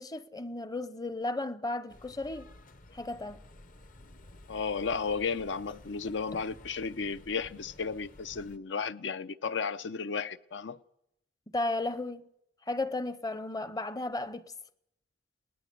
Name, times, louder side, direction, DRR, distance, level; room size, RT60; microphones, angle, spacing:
voice 1, 0.0-2.5 2.9-3.4 6.3-6.4 11.5-12.3 12.7-14.5, left 2 dB, 20° left, 0.7 m, -34 dB
sound 1, 1.9-8.6, left 1 dB, 50° left, 0.9 m, -53 dB
voice 2, 4.5-10.8, left 5 dB, 80° left, 0.7 m, -34 dB
22.5 x 18.5 x 6.8 m
head